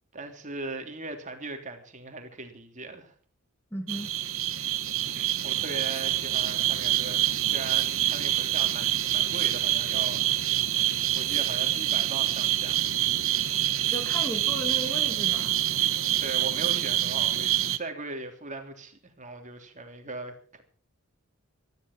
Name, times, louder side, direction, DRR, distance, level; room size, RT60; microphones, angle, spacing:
voice 1, 0.1-3.1 5.0-10.6 11.1-12.9 16.2-20.6, right 3 dB, 35° right, 3.2 m, -39 dB
voice 2, 3.7-4.1 13.9-15.6, equal, 10° left, 2.5 m, -35 dB
sound 1, 3.9-17.8, right 13 dB, 65° right, 1.4 m, -26 dB
21.5 x 14.0 x 4.5 m
head